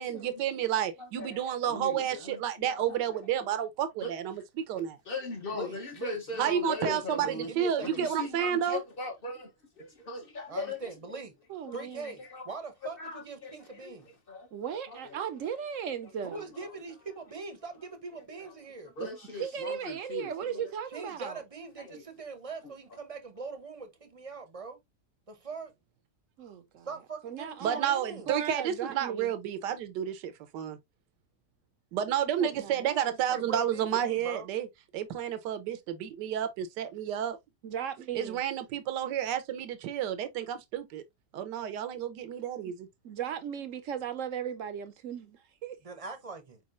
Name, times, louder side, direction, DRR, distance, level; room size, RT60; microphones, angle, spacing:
voice 1, 0.0-5.0 6.4-8.8 27.6-30.8 31.9-34.7 34.9-37.4 38.1-41.0 41.3-42.9, right 9 dB, 85° right, 1.3 m, -31 dB
voice 2, 1.0-3.0 4.0-4.1 4.7-7.5 7.8-9.5 9.8-10.8 11.7-12.5 12.8-13.9 14.3-14.5 14.9-15.2 19.0-20.6 21.9-22.0, left 3 dB, 45° left, 0.8 m, -39 dB
voice 3, 5.5-6.5 6.8-8.1 10.5-11.3 11.7-14.1 16.3-18.9 20.9-24.8 25.3-25.7 26.9-28.3 33.3-34.5 45.8-46.6, right 4 dB, 35° right, 0.5 m, -42 dB
voice 4, 11.5-12.1 14.5-16.4 19.3-21.4 26.4-26.9 27.2-27.9 28.3-29.3 32.3-33.5 37.6-38.4 42.7-42.8 43.0-45.8, right 8 dB, 65° right, 0.8 m, -37 dB
4.6 x 4.3 x 2.4 m
omnidirectional pair, 1.8 m